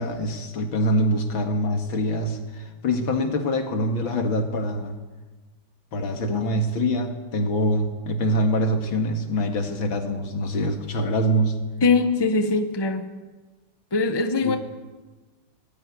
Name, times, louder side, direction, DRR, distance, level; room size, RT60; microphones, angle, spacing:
voice 1, 0.0-5.0 5.9-11.6 14.4-14.6, equal, 85° left, 6 dB, 2.8 m, -24 dB
voice 2, 11.8-13.1 13.9-14.6, left 3 dB, 15° left, 8 dB, 1.0 m, -21 dB
19.5 x 15.5 x 9.8 m, 1.3 s
omnidirectional pair, 2.1 m